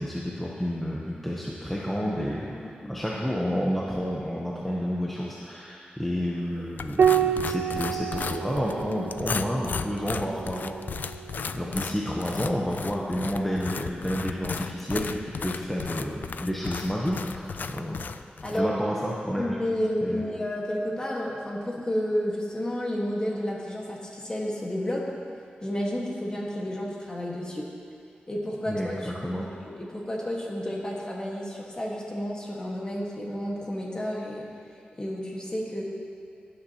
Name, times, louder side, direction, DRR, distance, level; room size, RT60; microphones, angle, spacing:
voice 1, 0.0-2.6 2.9-10.7 11.5-15.1 15.4-18.0 18.5-19.6 20.0-20.2 28.7-29.4, equal, 5° left, -5 dB, 0.9 m, -30 dB
voice 2, 2.5-3.0 18.4-18.8 19.4-25.0 25.6-27.7 28.3-34.5 35.0-35.8, equal, 25° left, -3 dB, 1.6 m, -31 dB
sound 1, 6.8-18.6, left 5 dB, 65° left, 0.3 m, -35 dB
Piano, 7.0-11.8 13.5-14.3, right 8 dB, 90° right, 0.4 m, -29 dB
16.0 x 9.7 x 2.9 m, 2.3 s
wide cardioid pair, 140°, 3 cm